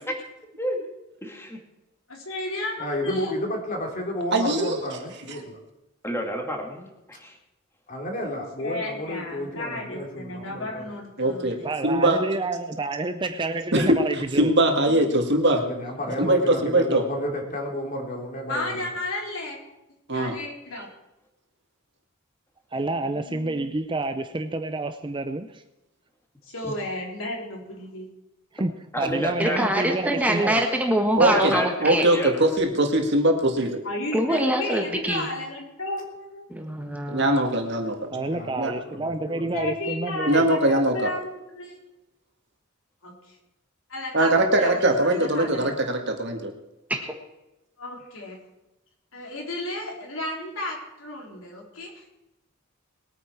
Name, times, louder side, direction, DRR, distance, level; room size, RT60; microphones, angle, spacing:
voice 1, 1.2-1.6 6.0-6.9 7.2-7.4 26.6-26.7 28.9-29.6 31.3-32.3, equal, 10° left, 2.3 m, -30 dB
voice 2, 2.1-3.4 8.6-11.5 18.5-19.6 20.1-20.9 22.7-23.7 26.5-28.1 33.8-36.5 39.5-41.8 43.0-43.4 43.9-46.0 47.8-48.4 49.1-52.0, left 1 dB, 75° left, 3.9 m, -34 dB
voice 3, 2.8-5.6 7.9-10.9 15.6-18.9 38.1-39.6, left 1 dB, 40° left, 3.4 m, -32 dB
voice 4, 4.3-4.8 11.2-11.6 11.8-12.2 13.7-14.0 14.4-15.6 16.2-17.0 20.1-20.4 31.2-33.8 37.1-37.9 38.6-38.7 40.3-41.1 44.1-46.5, right 1 dB, 55° right, 1.9 m, -21 dB
voice 5, 11.6-14.5 16.1-16.3 22.7-25.6 28.5-30.6 38.1-40.5, right 2 dB, 25° right, 0.5 m, -29 dB
voice 6, 29.4-32.0 34.1-35.3 36.5-37.4 46.9-47.0, right 1 dB, 5° right, 1.5 m, -24 dB
21.0 x 9.3 x 4.7 m
head